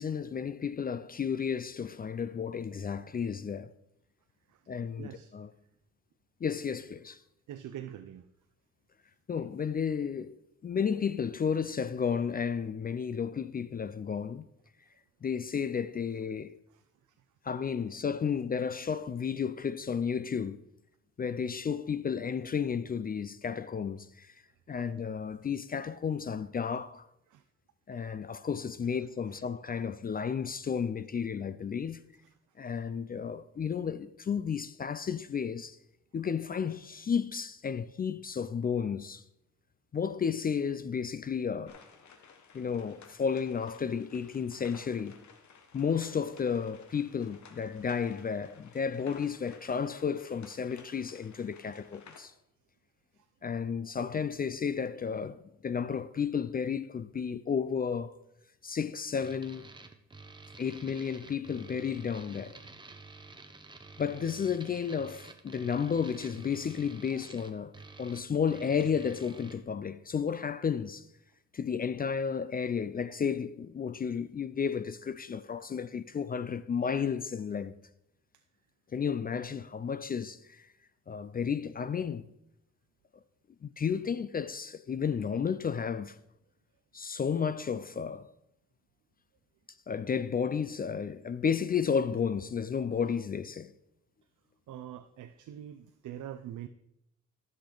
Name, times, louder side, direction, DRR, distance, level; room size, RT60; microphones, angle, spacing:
voice 1, 0.0-3.7 4.7-5.5 6.4-7.2 9.3-10.4 10.6-14.5 15.2-16.6 17.4-20.6 21.2-24.3 24.7-27.1 27.9-32.0 32.6-35.8 36.1-39.2 39.9-41.8 42.5-45.2 45.7-52.3 53.4-58.1 58.6-59.7 60.6-62.6 64.0-67.7 68.0-71.1 71.5-77.7 78.9-80.7 81.1-82.3 83.6-86.2 86.9-88.3 89.9-93.7, left 6 dB, 30° left, 0.4 m, -32 dB
voice 2, 5.0-5.3 7.5-8.3 16.7-17.2 24.8-24.9 27.3-27.4 29.3-29.5 32.2-32.3 53.1-53.3 67.1-67.3 94.7-96.7, right 11 dB, 75° right, 0.6 m, -45 dB
sound 1, 41.7-52.2, left 6 dB, 65° left, 1.3 m, -56 dB
sound 2, 59.2-69.6, right 3 dB, 15° right, 0.9 m, -50 dB
13.5 x 6.6 x 3.9 m
cardioid pair, 110°, 31 cm